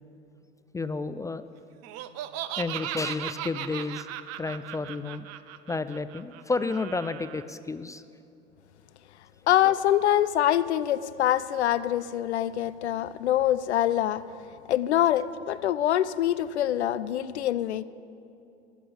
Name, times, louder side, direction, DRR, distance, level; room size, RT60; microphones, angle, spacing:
voice 1, 0.7-1.5 2.6-4.1 4.4-5.3 5.7-8.0, left 3 dB, 10° left, 0.3 m, -31 dB
Laughter, 1.8-7.4, right 12 dB, 50° right, 0.8 m, -37 dB
voice 2, 9.5-14.2 14.7-17.8, left 12 dB, 80° left, 0.6 m, -24 dB
19.0 x 7.8 x 7.8 m
hypercardioid pair, 80°, 33 cm